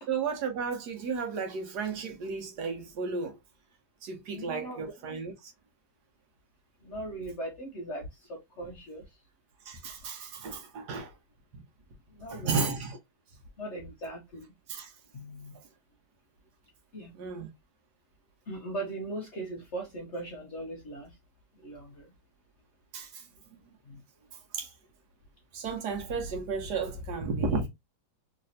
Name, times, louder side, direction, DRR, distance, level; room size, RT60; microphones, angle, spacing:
voice 1, 0.1-3.4 4.0-5.5 9.7-11.1 11.5-11.6 12.3-13.0 14.7-14.9 17.1-17.5 22.9-23.2 24.5-24.7 25.5-27.7, right 4 dB, 70° right, 1.3 m, -33 dB
voice 2, 4.3-5.0 6.8-9.0 12.1-12.7 13.6-14.5 15.1-15.6 16.9-17.1 18.5-21.2 21.6-22.1 23.9-24.0, right 1 dB, 60° left, 0.7 m, -39 dB
3.2 x 2.8 x 2.6 m
omnidirectional pair, 1.9 m